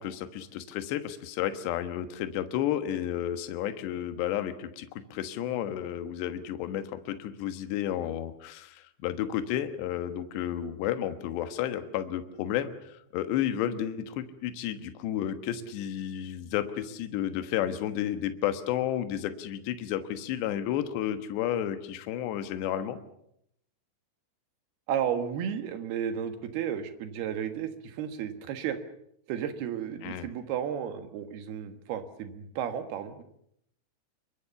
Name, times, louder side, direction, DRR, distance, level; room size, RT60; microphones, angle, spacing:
voice 1, 0.0-23.0 30.0-30.3, left 11 dB, 70° left, 10 dB, 3.4 m, -32 dB
voice 2, 24.9-28.8 29.3-33.2, right 8 dB, 65° right, 9 dB, 3.3 m, -33 dB
26.0 x 22.5 x 7.0 m, 0.73 s
omnidirectional pair, 5.3 m